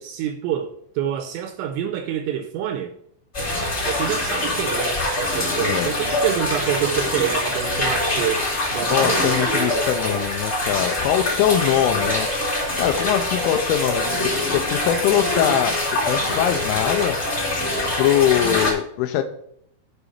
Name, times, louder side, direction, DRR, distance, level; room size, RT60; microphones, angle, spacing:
voice 1, 0.0-3.0 3.8-8.5 8.7-9.9 12.0-12.2 17.7-17.9, right 10 dB, 85° right, 2.7 m, -27 dB
sound 1, 3.3-18.7, left 2 dB, 20° left, 1.7 m, -24 dB
voice 2, 5.6-5.9 8.8-12.3 12.8-17.2 18.0-19.3, left 10 dB, 90° left, 3.1 m, -22 dB
7.6 x 4.9 x 6.7 m
omnidirectional pair, 5.6 m